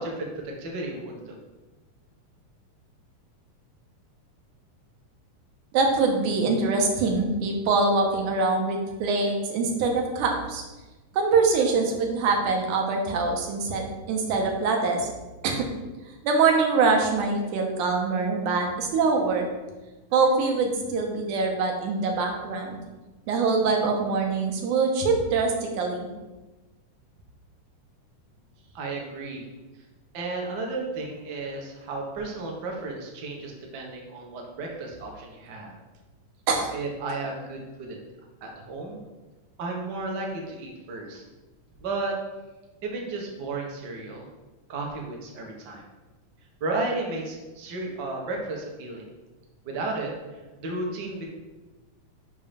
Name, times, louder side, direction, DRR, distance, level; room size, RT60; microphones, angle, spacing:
voice 1, 0.0-1.3 28.7-29.4 30.1-35.8 36.7-38.0 38.4-39.0 39.6-41.2 41.8-42.2 42.8-44.3 44.7-45.8 46.6-49.0 49.6-50.1 50.6-51.3, right 2 dB, 50° right, 0 dB, 1.3 m, -33 dB
voice 2, 5.7-10.6 11.1-15.1 15.4-15.7 16.2-19.5 20.1-22.8 23.3-26.1 36.5-36.8, right 4 dB, 85° right, 2 dB, 2.5 m, -24 dB
5.8 x 5.7 x 5.1 m, 1.1 s
omnidirectional pair, 3.5 m